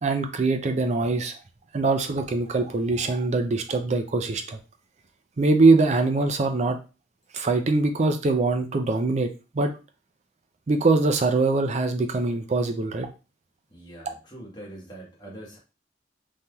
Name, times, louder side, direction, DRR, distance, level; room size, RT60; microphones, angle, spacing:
voice 1, 0.0-1.4 1.7-4.6 5.4-6.8 7.3-9.7 10.7-13.1, right 3 dB, 40° right, 6 dB, 0.4 m, -23 dB
voice 2, 13.7-15.6, right 1 dB, 25° left, -4 dB, 1.2 m, -43 dB
3.3 x 2.7 x 2.3 m, 0.32 s
head